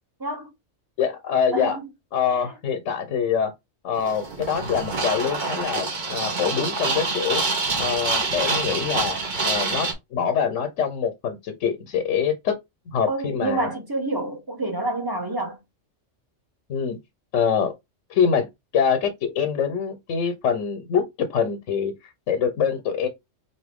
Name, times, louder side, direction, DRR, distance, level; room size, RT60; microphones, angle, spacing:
voice 1, 0.2-0.5 1.5-1.9 2.3-2.6 13.1-15.6, right 2 dB, 20° right, 0.9 m, -28 dB
voice 2, 1.0-1.8 2.1-3.5 3.8-7.5 7.8-9.2 9.4-12.6 12.9-13.7 16.7-17.0 17.3-17.7 18.1-18.5 18.7-21.0 21.3-21.9 22.3-23.1, left 7 dB, 80° left, 1.0 m, -24 dB
sound 1, 3.9-9.9, right 3 dB, 40° right, 1.0 m, -26 dB
4.0 x 3.0 x 3.4 m
omnidirectional pair, 1.3 m